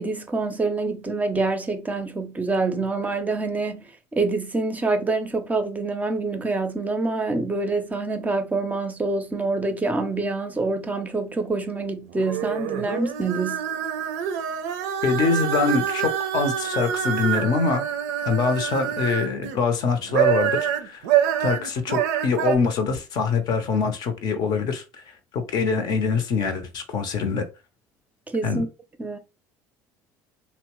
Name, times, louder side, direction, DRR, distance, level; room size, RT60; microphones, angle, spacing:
voice 1, 0.0-13.7 28.3-28.7 29.0-29.2, right 3 dB, 20° right, 0.5 m, -26 dB
sound 1, 12.1-19.6 20.0-22.6, right 9 dB, 80° right, 0.4 m, -26 dB
voice 2, 15.0-17.8 18.2-20.6 20.8-21.0 21.4-24.8 25.3-27.5 28.4-28.6, left 4 dB, 55° left, 0.6 m, -24 dB
2.8 x 2.1 x 2.9 m
hypercardioid pair, 80°, 8 cm